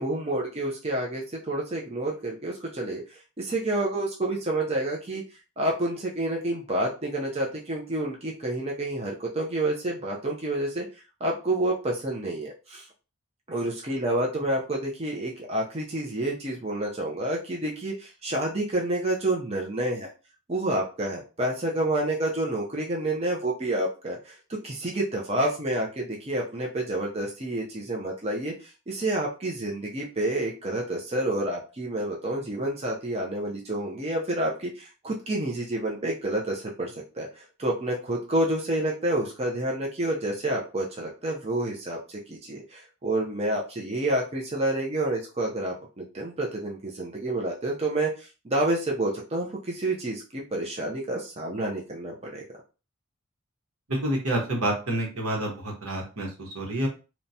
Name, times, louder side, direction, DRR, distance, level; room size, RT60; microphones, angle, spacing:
voice 1, 0.0-5.2 5.6-10.9 11.2-12.9 13.5-20.1 20.5-24.4 24.6-52.4, right 1 dB, 30° right, -2 dB, 0.5 m, -29 dB
voice 2, 53.9-56.9, right 1 dB, 80° right, 0 dB, 1.0 m, -28 dB
2.9 x 2.2 x 2.7 m, 0.32 s
head